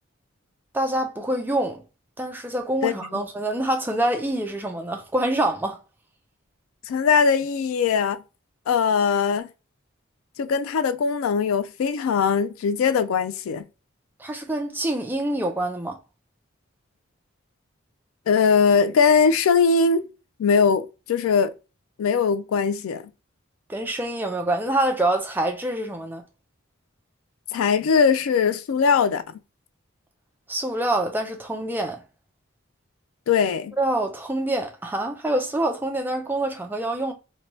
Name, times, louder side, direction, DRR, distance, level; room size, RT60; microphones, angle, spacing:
voice 1, 0.7-1.8 2.2-5.8 14.2-16.0 23.7-26.2 30.5-32.0 33.8-37.1, right 1 dB, 10° right, 0.4 m, -26 dB
voice 2, 6.9-8.2 8.7-9.5 10.4-13.7 18.3-20.1 20.4-21.5 22.0-23.0 27.5-29.2 33.3-33.8, left 5 dB, 75° left, 0.3 m, -20 dB
2.7 x 2.2 x 2.9 m
head